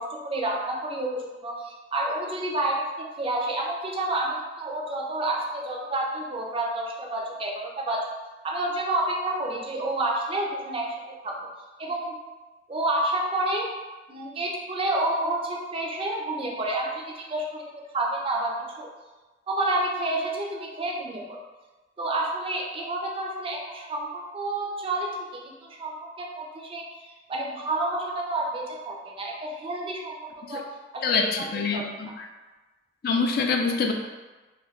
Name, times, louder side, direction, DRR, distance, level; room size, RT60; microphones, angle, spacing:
voice 1, 0.0-8.0 8.4-10.8 11.2-11.3 11.8-12.2 12.7-13.7 14.1-17.6 17.9-18.9 19.5-21.4 22.0-30.1 30.5-30.6 30.9-31.3 31.7-31.8, right 2 dB, 30° right, -1 dB, 0.4 m, -29 dB
voice 2, 31.0-32.3 33.0-33.9, left 4 dB, 55° left, 3 dB, 0.3 m, -25 dB
2.2 x 2.2 x 3.5 m, 1.2 s
head